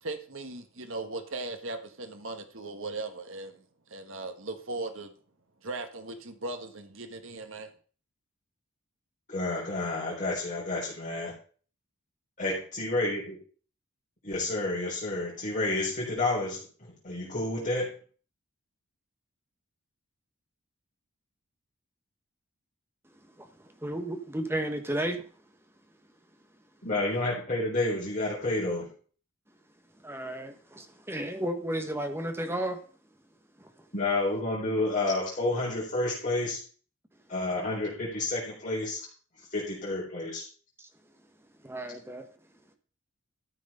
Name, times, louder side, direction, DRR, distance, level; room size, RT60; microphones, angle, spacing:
voice 1, 0.0-3.6 3.9-5.1 5.6-7.7, right 2 dB, 65° right, 1.5 m, -38 dB
voice 2, 9.3-11.3 12.4-13.4 14.2-17.9 26.8-28.9 33.9-36.6 37.3-39.0 39.4-40.4, left 2 dB, 35° left, 3.9 m, -30 dB
voice 3, 23.8-25.2 30.0-32.8 33.6-33.7 41.6-42.3, right 1 dB, 10° right, 1.2 m, -33 dB
13.5 x 6.1 x 5.5 m
head